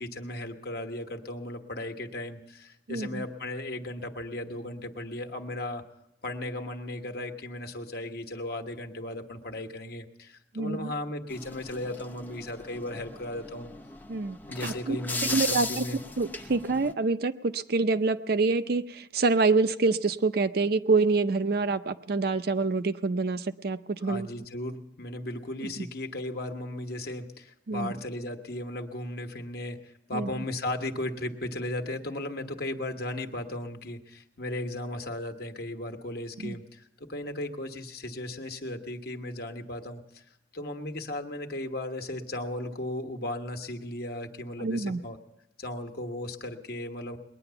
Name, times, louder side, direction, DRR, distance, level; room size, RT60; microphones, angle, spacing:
voice 1, 0.0-5.8 6.2-13.7 14.5-16.0 24.0-40.2 40.5-45.2 45.6-47.2, left 1 dB, 60° left, 4 dB, 1.3 m, -36 dB
voice 2, 2.9-3.2 10.5-10.9 14.1-14.4 14.6-15.0 15.3-15.8 16.2-24.3 25.6-25.9 27.7-27.9 30.1-30.4 36.4-36.6 44.6-45.0, right 3 dB, 60° right, 11 dB, 0.6 m, -26 dB
sound 1, 11.3-16.9, left 3 dB, 10° left, 0.6 m, -37 dB
20.5 x 9.9 x 6.9 m, 0.86 s
head